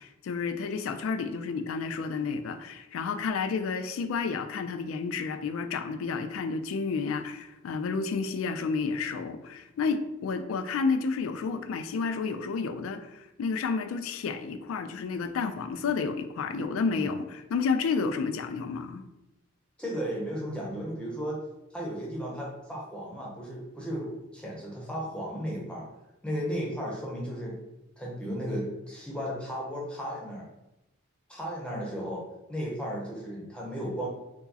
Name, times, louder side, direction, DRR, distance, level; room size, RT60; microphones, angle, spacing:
voice 1, 0.0-19.1, left 5 dB, 75° left, 9 dB, 0.3 m, -31 dB
voice 2, 19.8-21.4 21.7-24.1 24.3-25.8 26.2-27.5 28.0-30.4 31.3-32.2 32.5-34.1, equal, 5° left, -4 dB, 0.6 m, -34 dB
4.5 x 2.0 x 2.7 m, 0.92 s
head